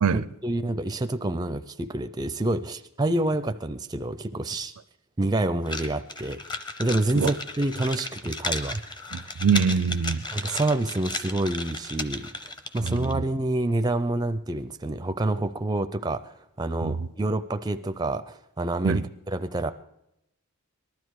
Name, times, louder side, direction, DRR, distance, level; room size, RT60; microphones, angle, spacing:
voice 1, 0.1-4.7 5.2-6.4 6.8-8.8 10.3-12.3 12.7-19.7, right 2 dB, 20° right, 0.4 m, -27 dB
sound 1, 5.7-13.2, left 2 dB, 20° left, 0.7 m, -35 dB
voice 2, 9.1-10.2 12.8-13.1 16.8-16.9 18.8-19.0, right 6 dB, 75° right, 0.5 m, -23 dB
19.5 x 12.5 x 4.8 m
head